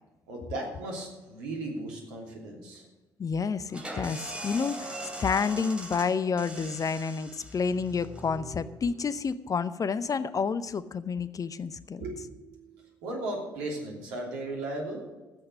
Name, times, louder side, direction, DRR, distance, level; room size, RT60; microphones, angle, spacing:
voice 1, 0.3-2.9 12.0-15.0, right 2 dB, 70° right, 0 dB, 3.1 m, -36 dB
voice 2, 3.2-4.9 5.2-12.0, left 5 dB, 35° left, 15 dB, 0.7 m, -29 dB
sound 1, 3.7-9.2, right 1 dB, 10° right, 3.0 m, -41 dB
13.5 x 8.1 x 6.5 m, 1.2 s
figure-of-eight pair, 45°, 10 cm